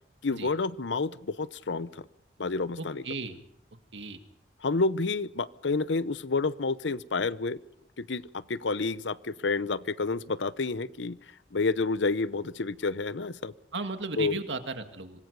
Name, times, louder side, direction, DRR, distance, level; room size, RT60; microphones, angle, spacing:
voice 1, 0.2-2.0 2.4-3.0 4.6-7.6 8.0-11.2 11.5-13.5 14.2-14.4, left 3 dB, 85° left, 17 dB, 0.8 m, -29 dB
voice 2, 2.8-3.4 3.9-4.2 13.7-15.2, right 3 dB, 85° right, 7 dB, 2.0 m, -35 dB
26.0 x 20.0 x 5.4 m, 0.71 s
head